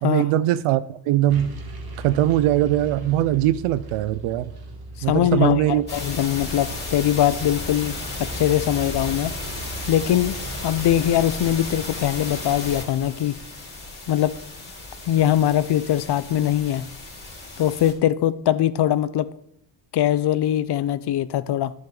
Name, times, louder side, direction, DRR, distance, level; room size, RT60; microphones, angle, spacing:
voice 1, 0.0-1.5 2.0-4.5 5.0-5.8, right 13 dB, 85° right, 0.6 m, -21 dB
sound 1, 1.3-11.0, right 1 dB, 45° right, 1.9 m, -38 dB
voice 2, 5.1-9.3 9.9-10.4 10.6-13.3 14.1-14.3 15.1-16.9 17.6-19.3 19.9-21.7, left 11 dB, 55° left, 0.6 m, -21 dB
sound 2, 5.9-17.9, left 2 dB, 20° left, 3.2 m, -34 dB
10.5 x 7.4 x 3.9 m
cardioid pair, 75°, 49 cm